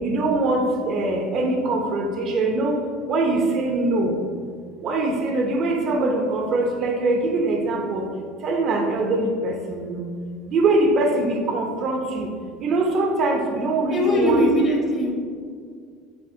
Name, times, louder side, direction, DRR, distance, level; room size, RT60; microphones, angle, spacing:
voice 1, 0.0-2.8 3.1-4.2 4.8-8.0 8.4-10.0 10.5-12.3 12.6-14.4, right 2 dB, 50° right, 2 dB, 0.6 m, -22 dB
voice 2, 13.9-15.1, equal, 40° left, 0 dB, 1.1 m, -20 dB
6.4 x 2.4 x 2.7 m, 2.1 s
supercardioid pair, 95°, 0 cm